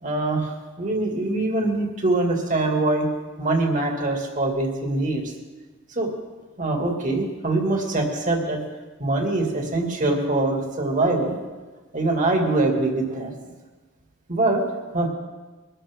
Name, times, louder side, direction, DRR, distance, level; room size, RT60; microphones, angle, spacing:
voice 1, 0.0-0.5 0.8-3.1 3.4-5.2 6.0-6.1 6.6-8.6 9.0-11.4 11.9-13.3 14.3-14.6 14.9-15.1, right 2 dB, 40° right, 1 dB, 2.4 m, -23 dB
22.5 x 12.5 x 3.8 m, 1.3 s
head